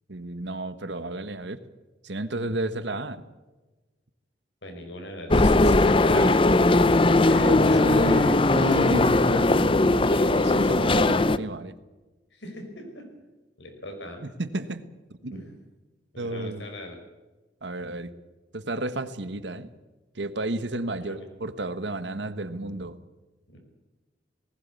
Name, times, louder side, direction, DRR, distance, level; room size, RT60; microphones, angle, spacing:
voice 1, 0.1-1.6 2.0-3.2 5.9-6.7 7.2-11.7 14.4-14.9 15.2-15.4 16.2-16.6 17.6-18.1 18.5-19.7 20.1-23.0, right 2 dB, 80° right, 12 dB, 1.3 m, -32 dB
voice 2, 4.6-8.4 12.3-13.1 13.6-14.2 15.3-15.6 16.1-17.0 21.0-21.3 23.5-23.6, left 1 dB, 85° left, 4 dB, 5.5 m, -40 dB
sound 1, 5.3-11.4, left 2 dB, 30° left, 0.6 m, -19 dB
19.0 x 17.0 x 8.4 m, 1.2 s
head